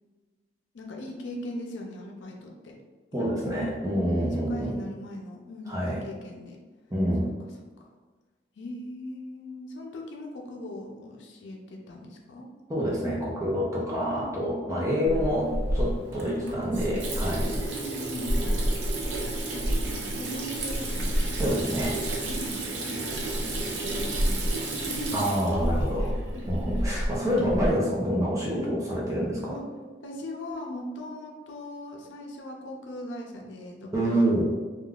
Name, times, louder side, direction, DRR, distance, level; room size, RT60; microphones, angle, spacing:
voice 1, 0.7-2.7 3.1-3.4 4.1-6.6 8.6-12.5 13.8-14.4 14.7-15.2 16.3-16.8 17.4-18.5 19.2-21.2 22.3-25.3 26.0-26.5 26.8-26.9 27.3-27.6 28.5-28.7 29.5-29.6 30.0-34.2, left 1 dB, 80° left, 0 dB, 0.5 m, -39 dB
voice 2, 3.1-4.8 5.7-6.0 6.9-7.3 12.7-17.5 21.4-22.0 25.1-26.2 26.5-29.6 33.9-34.5, equal, 15° right, -4 dB, 0.6 m, -27 dB
Water tap faucet / Sink (filling or washing), 15.1-27.7, right 1 dB, 75° right, 0.5 m, -30 dB
3.5 x 2.3 x 2.3 m, 1.3 s
head